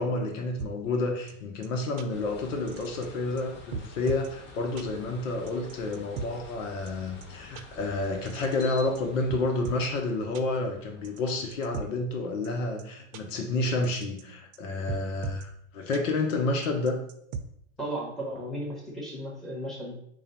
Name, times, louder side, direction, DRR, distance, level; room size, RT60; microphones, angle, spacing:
voice 1, 0.0-17.0, left 2 dB, 70° left, 4 dB, 0.9 m, -30 dB
sound 1, 0.6-0.7 1.3-1.4 1.6-1.7 2.0-2.1 2.7-3.1 3.4-3.5 3.7-4.3 4.8-4.9 5.5-6.3 6.9-7.0 7.2-7.3 7.5-7.6 8.3-9.0 9.3-9.9 10.3-10.4 11.0-11.9 12.4-12.5 12.8-12.9 13.1-13.2 13.8-14.2 14.5-14.6 14.9-15.4 15.9-16.0 16.6-17.4, right 6 dB, 65° right, 0.7 m, -37 dB
sound 2, 2.1-11.8, left 3 dB, 25° left, 0.8 m, -49 dB
voice 2, 17.8-20.0, right 1 dB, ahead, -4 dB, 1.5 m, -35 dB
4.8 x 2.4 x 4.3 m, 0.71 s
hypercardioid pair, 115°, 40 cm